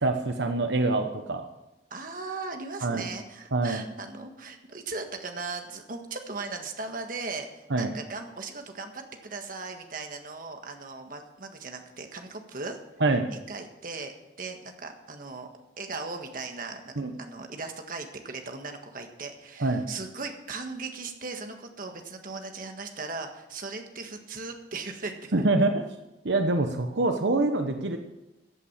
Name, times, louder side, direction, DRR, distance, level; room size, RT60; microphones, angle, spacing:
voice 1, 0.0-1.5 2.8-3.0 3.5-3.8 7.7-7.9 13.0-13.3 17.0-17.1 19.6-19.9 25.3-25.7 26.2-28.0, right 2 dB, 80° right, 6 dB, 1.0 m, -25 dB
voice 2, 1.9-12.8 13.3-15.5 15.8-25.3, right 3 dB, 50° right, 5 dB, 1.6 m, -38 dB
15.0 x 8.6 x 7.4 m, 0.99 s
head